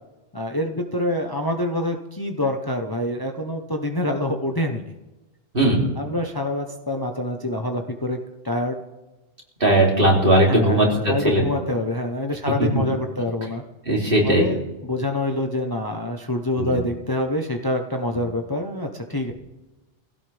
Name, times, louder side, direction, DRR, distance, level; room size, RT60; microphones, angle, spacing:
voice 1, 0.3-4.8 6.0-8.2 8.4-8.8 10.5-13.6 14.2-19.3, left 1 dB, 20° left, 4 dB, 1.0 m, -26 dB
voice 2, 9.6-11.5 13.9-14.5 16.6-16.8, right 1 dB, 55° right, -2 dB, 3.5 m, -18 dB
21.5 x 16.5 x 3.5 m, 1.1 s
omnidirectional pair, 1.1 m